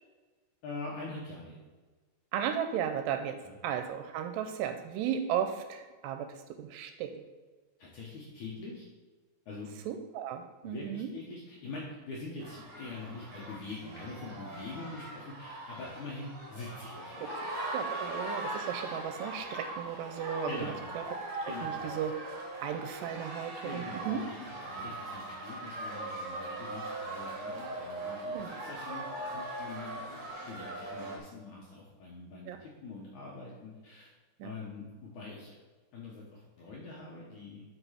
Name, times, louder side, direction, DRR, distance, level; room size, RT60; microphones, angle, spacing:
voice 1, 0.6-1.6 3.4-3.6 7.8-8.9 9.5-9.7 10.6-17.4 17.9-18.0 20.5-20.8 21.5-21.8 23.6-34.1 34.4-35.5 35.9-37.6, left 3 dB, 65° left, -4 dB, 2.0 m, -44 dB
voice 2, 2.3-3.4 3.6-6.3 6.6-7.1 9.9-11.1 17.7-21.0 21.4-22.1 22.6-24.2 28.3-28.6 32.5-32.6 34.4-34.5, right 9 dB, 85° right, 7 dB, 2.6 m, -35 dB
sound 1, 12.4-31.2, right 2 dB, 55° right, 1.6 m, -40 dB
8.1 x 5.3 x 5.7 m, 1.3 s
omnidirectional pair, 5.0 m